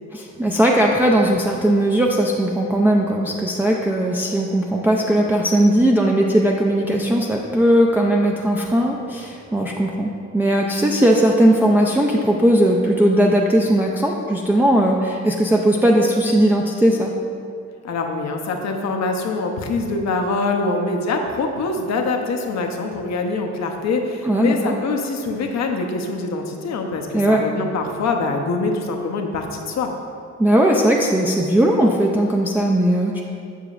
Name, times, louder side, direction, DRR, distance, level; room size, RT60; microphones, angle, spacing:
voice 1, 0.1-17.1 24.2-24.7 27.1-27.4 30.4-33.2, right 1 dB, 5° right, -2 dB, 0.4 m, -18 dB
voice 2, 17.8-29.9, left 3 dB, 60° left, 3 dB, 0.8 m, -24 dB
7.0 x 6.6 x 2.4 m, 2.4 s
cardioid pair, 90°, 30 cm